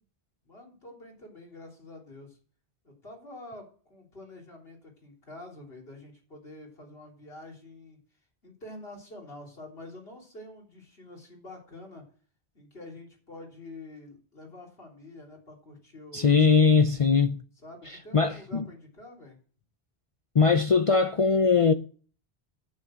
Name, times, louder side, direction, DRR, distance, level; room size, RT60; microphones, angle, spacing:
voice 1, 0.4-2.4 2.8-8.0 8.4-12.1 12.5-16.4 17.6-19.4, left 2 dB, 65° left, 3.7 m, -47 dB
voice 2, 16.1-17.4 18.1-18.6 20.3-21.7, left 5 dB, 45° left, 0.5 m, -21 dB
9.5 x 8.5 x 6.3 m
omnidirectional pair, 1.1 m